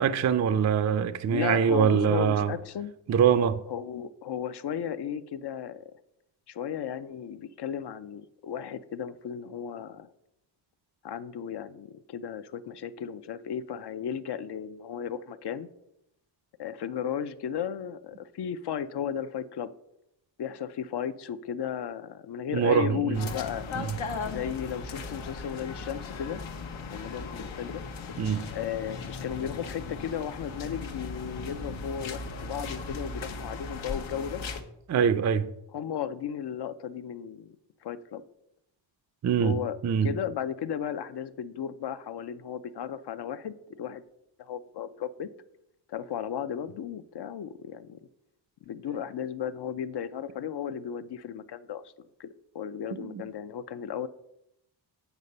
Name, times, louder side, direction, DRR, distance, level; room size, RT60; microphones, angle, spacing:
voice 1, 0.0-2.5 3.1-3.6 22.5-23.3 23.8-24.0 28.2-28.5 34.9-35.5 39.2-40.1 52.9-53.2, right 7 dB, 40° right, 0.4 m, -24 dB
voice 2, 1.3-2.9 3.7-5.9 6.5-10.1 11.0-15.7 16.6-19.7 20.4-23.7 24.2-26.4 26.9-27.8 28.5-34.4 35.7-37.5 37.8-38.2 39.4-39.8 40.0-44.0 44.4-45.3 45.9-48.0 48.7-51.8 52.2-52.3 52.5-54.1, left 8 dB, 60° left, 0.6 m, -35 dB
sound 1, 23.1-34.6, left 4 dB, 80° left, 1.0 m, -37 dB
8.2 x 5.0 x 5.4 m
wide cardioid pair, 105°, 46 cm